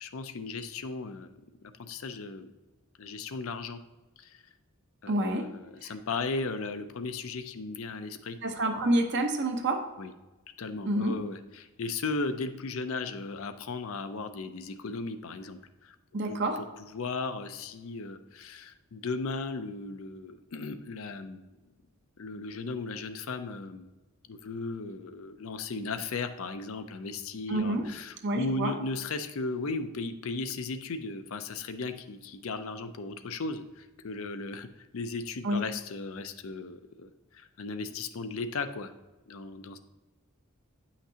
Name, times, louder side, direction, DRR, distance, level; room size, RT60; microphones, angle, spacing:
voice 1, 0.0-1.3 1.6-2.5 3.0-3.8 4.2-4.4 5.0-8.4 10.0-10.1 10.6-15.9 16.3-16.6 16.9-21.5 22.2-23.9 24.3-38.9 39.3-39.8, left 3 dB, 65° left, 9 dB, 0.5 m, -36 dB
voice 2, 5.1-5.5 8.4-9.9 10.8-11.2 16.1-16.6 27.5-27.9 28.2-28.7 35.4-35.7, right 1 dB, 55° right, 4 dB, 0.9 m, -28 dB
9.0 x 5.8 x 2.8 m, 1.1 s
head